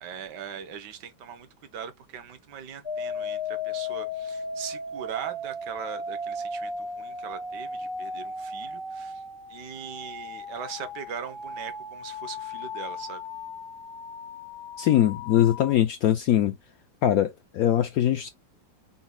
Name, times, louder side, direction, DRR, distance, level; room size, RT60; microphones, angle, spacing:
voice 1, 0.0-9.2 9.5-13.2, right 7 dB, 70° right, 1.5 m, -40 dB
sound 1, 2.8-15.7, left 3 dB, 35° left, 0.4 m, -36 dB
voice 2, 14.8-16.6 17.0-18.3, left 11 dB, 70° left, 0.8 m, -22 dB
5.7 x 2.2 x 3.7 m
omnidirectional pair, 2.0 m